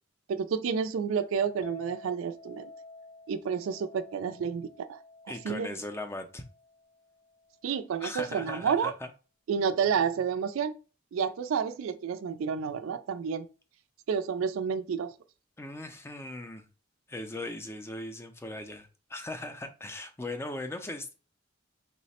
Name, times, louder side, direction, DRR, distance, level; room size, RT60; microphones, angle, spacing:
voice 1, 0.3-2.7 3.3-5.0 5.4-5.7 7.6-8.9 9.5-10.7 11.1-13.5 14.1-15.1, right 6 dB, 70° right, 0.3 m, -30 dB
Chink clink, 1.6-7.9, left 3 dB, 75° left, 0.5 m, -51 dB
voice 2, 5.3-6.4 8.0-9.1 15.6-16.7 17.1-21.1, left 1 dB, 10° left, 0.4 m, -39 dB
3.1 x 2.1 x 4.1 m
head